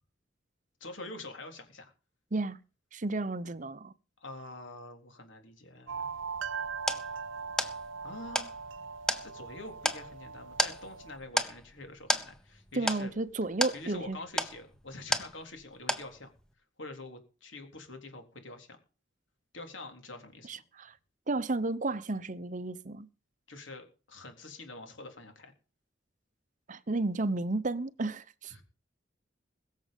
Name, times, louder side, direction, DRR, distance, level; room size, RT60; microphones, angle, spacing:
voice 1, 0.8-1.9 4.2-6.1 8.0-8.6 9.2-13.1 13.7-16.3 16.8-18.8 19.5-20.5 23.5-25.5 28.5-28.6, left 2 dB, 80° left, 3.8 m, -46 dB
voice 2, 2.9-3.9 12.7-14.2 20.5-21.0 21.3-23.1 26.7-28.5, right 2 dB, 40° right, 0.8 m, -32 dB
sound 1, 5.9-11.2, right 6 dB, 85° right, 0.8 m, -40 dB
sound 2, 6.2-15.6 15.9-16.5, equal, 5° left, 1.0 m, -34 dB
21.5 x 7.5 x 5.3 m
head